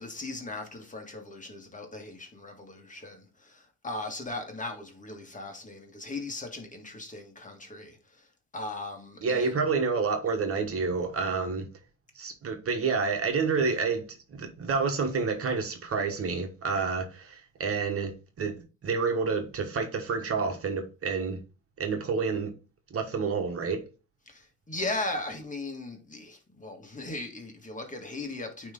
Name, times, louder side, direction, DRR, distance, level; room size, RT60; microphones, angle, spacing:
voice 1, 0.0-8.3 8.5-9.7 24.3-28.7, left 2 dB, 25° left, 1.7 m, -38 dB
voice 2, 9.2-11.7 12.1-14.0 14.3-18.1 18.4-18.6 18.8-21.4 21.8-22.5 22.9-23.8, right 5 dB, 50° right, 1.4 m, -29 dB
9.1 x 3.3 x 3.7 m
cardioid pair, 90°, 30 cm